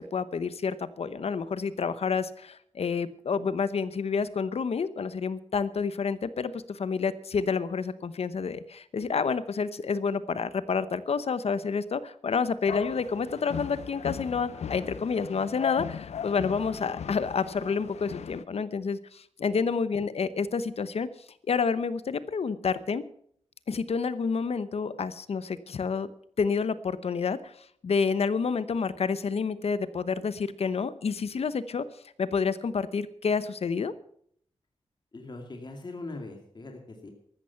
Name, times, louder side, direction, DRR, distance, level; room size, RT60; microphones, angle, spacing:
voice 1, 0.1-21.1 21.5-23.0 23.7-26.1 26.4-27.5 27.8-31.8 32.2-33.9, left 5 dB, 70° left, 15 dB, 0.9 m, -29 dB
sound 1, 12.7-18.4, left 8 dB, 90° left, 0.6 m, -38 dB
voice 2, 35.1-37.1, left 2 dB, 40° left, 3 dB, 2.3 m, -41 dB
14.5 x 13.0 x 5.8 m, 0.64 s
wide cardioid pair, 110°, 11 cm